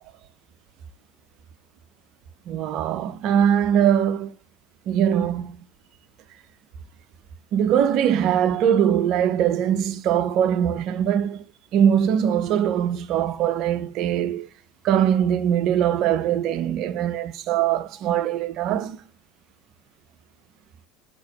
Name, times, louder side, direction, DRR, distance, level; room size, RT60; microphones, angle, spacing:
voice 1, 2.5-4.3 4.9-5.6 7.5-11.4 11.7-14.5 14.8-19.0, right 9 dB, 50° right, 0.5 m, -22 dB
5.8 x 2.9 x 2.8 m
figure-of-eight pair, 70°, 0 cm